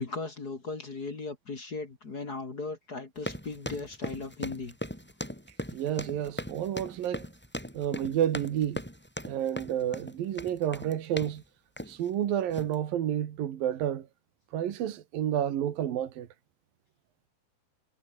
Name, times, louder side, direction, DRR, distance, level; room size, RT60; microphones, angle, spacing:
voice 1, 0.0-4.8, left 3 dB, 30° left, 2.4 m, -37 dB
sound 1, 3.2-11.4 11.8-12.1 12.5-12.8, equal, 5° left, 4.8 m, -39 dB
voice 2, 5.7-7.3 7.7-8.8 9.3-11.4 11.9-14.1 14.5-16.3, right 10 dB, 75° right, 3.6 m, -30 dB
omnidirectional pair, 4.1 m